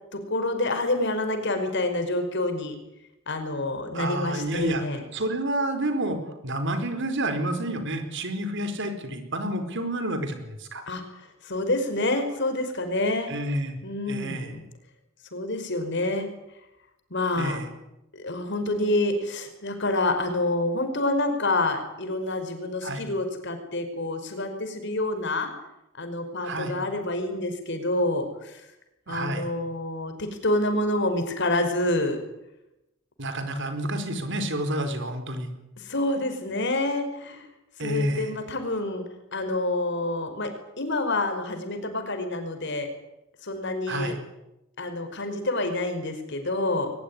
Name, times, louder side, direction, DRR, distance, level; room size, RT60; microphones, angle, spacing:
voice 1, 0.1-2.7 3.3-5.0 10.9-13.3 13.8-14.6 15.3-16.3 17.1-17.6 18.1-25.5 26.0-28.7 29.1-32.2 35.8-37.5 37.8-39.0 39.3-42.9 43.4-44.2 44.8-46.9, left 2 dB, 60° left, 7 dB, 5.1 m, -27 dB
voice 2, 3.9-4.8 5.1-10.8 13.3-13.8 14.1-14.5 17.4-17.7 22.8-23.1 26.4-26.8 29.1-29.5 33.2-35.5 37.8-38.3 43.9-44.2, right 1 dB, 60° right, 8 dB, 4.4 m, -29 dB
22.5 x 20.5 x 10.0 m, 0.92 s
head